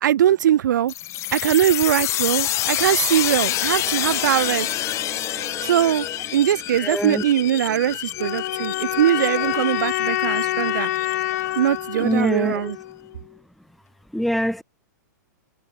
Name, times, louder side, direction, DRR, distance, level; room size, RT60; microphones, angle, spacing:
voice 1, 0.0-0.9 1.3-4.7 5.6-6.1 6.3-10.9 11.6-12.8, right 11 dB, 85° right, 0.4 m, -21 dB
sound 1, 0.9-12.3, left 15 dB, 30° left, 3.6 m, -28 dB
Bowed string instrument, 3.5-6.9, right 13 dB, 25° right, 2.5 m, -43 dB
voice 2, 6.8-7.2 12.0-12.7 14.1-14.6, equal, ahead, 2.2 m, -24 dB
sound 2, 8.2-13.2, left 15 dB, 60° left, 2.7 m, -27 dB
hypercardioid pair, 145°, 10 cm